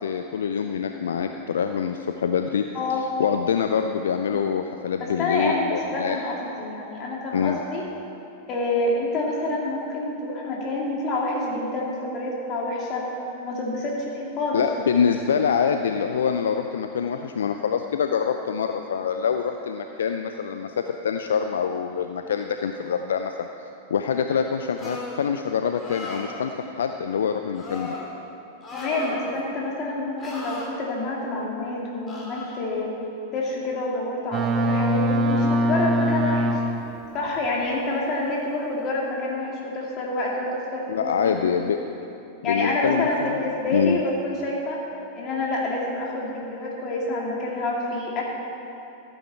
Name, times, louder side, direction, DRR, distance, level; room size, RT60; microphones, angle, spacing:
voice 1, 0.0-2.6 3.2-6.2 7.3-7.6 14.5-23.5 23.9-28.0 40.9-41.8 42.4-44.0, left 7 dB, 70° left, 6 dB, 0.4 m, -25 dB
voice 2, 5.0-7.8 8.5-13.0 13.4-14.6 28.7-32.9 33.3-36.6 37.1-41.6 42.4-44.8 45.1-48.2, left 2 dB, 40° left, -3 dB, 3.0 m, -28 dB
sound 1, 24.8-25.3 25.8-26.4 27.5-28.1 28.6-29.5 30.2-30.7 32.1-32.6, left 2 dB, 20° left, 2.7 m, -36 dB
Boat Water vehicle, 34.3-37.0, equal, 30° right, 1.0 m, -22 dB
15.0 x 9.1 x 4.5 m, 2.9 s
figure-of-eight pair, 95°, 0 cm